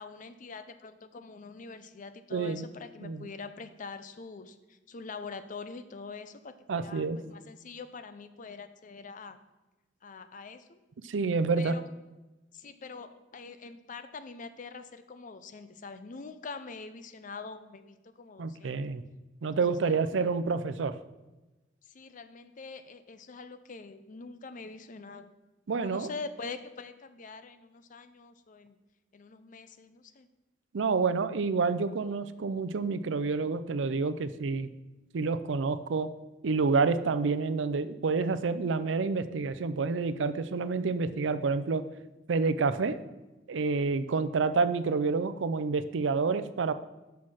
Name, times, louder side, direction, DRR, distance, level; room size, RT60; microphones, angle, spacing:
voice 1, 0.0-9.4 10.0-10.8 11.6-11.9 12.5-18.8 19.8-20.3 21.8-25.3 25.8-28.8 29.1-30.3, left 4 dB, 45° left, 11 dB, 0.6 m, -44 dB
voice 2, 2.3-2.7 3.0-3.3 6.7-7.2 11.0-11.8 18.4-19.0 19.4-20.9 25.7-26.1 30.7-34.7 35.1-36.1 36.4-41.8 42.3-43.0 43.5-46.7, right 4 dB, 90° right, 13 dB, 0.5 m, -28 dB
6.3 x 5.7 x 6.3 m, 1.1 s
head